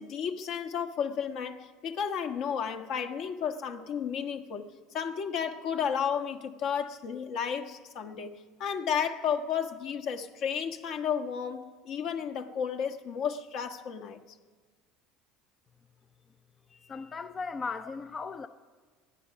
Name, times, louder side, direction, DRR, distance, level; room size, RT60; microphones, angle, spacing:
voice 1, 0.0-4.7 4.9-8.3 8.6-14.2, left 7 dB, 60° left, 1.4 m, -32 dB
voice 2, 16.7-18.5, left 4 dB, 25° left, 0.5 m, -37 dB
24.0 x 10.0 x 5.9 m
supercardioid pair, 115°, 0 cm